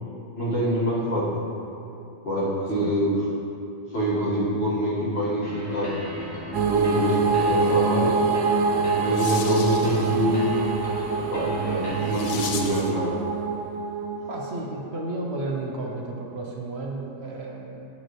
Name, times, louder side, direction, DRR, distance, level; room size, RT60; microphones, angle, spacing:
voice 1, 0.4-1.4 2.2-3.1 3.9-6.0 6.7-8.3 8.9-10.5 11.2-13.1, equal, 55° left, -8 dB, 2.1 m, -26 dB
sound 1, 5.4-12.8, left 1 dB, 20° left, 1.1 m, -36 dB
sound 2, 6.5-15.3, right 4 dB, 85° right, 1.0 m, -25 dB
sound 3, 8.6-13.0, left 5 dB, 90° left, 1.1 m, -38 dB
voice 2, 14.3-17.8, right 2 dB, 60° right, -1 dB, 1.0 m, -32 dB
9.7 x 6.7 x 3.1 m, 2.7 s
omnidirectional pair, 1.3 m